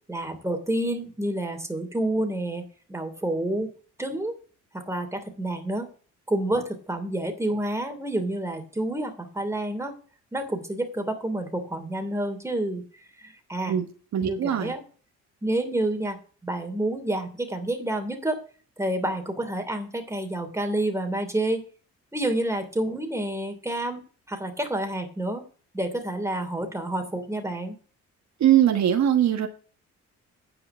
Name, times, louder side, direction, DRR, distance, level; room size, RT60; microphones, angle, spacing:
voice 1, 0.1-3.7 4.0-4.3 4.7-5.9 6.3-9.9 10.3-12.8 13.2-13.8 14.3-14.8 15.4-16.2 16.4-18.4 18.8-21.6 22.1-24.0 24.3-25.4 25.7-27.8, right 1 dB, 10° right, 6 dB, 2.8 m, -29 dB
voice 2, 14.1-14.7 28.4-29.5, right 10 dB, 65° right, 6 dB, 1.4 m, -21 dB
9.9 x 5.0 x 8.0 m, 0.40 s
cardioid pair, 90°, 30 cm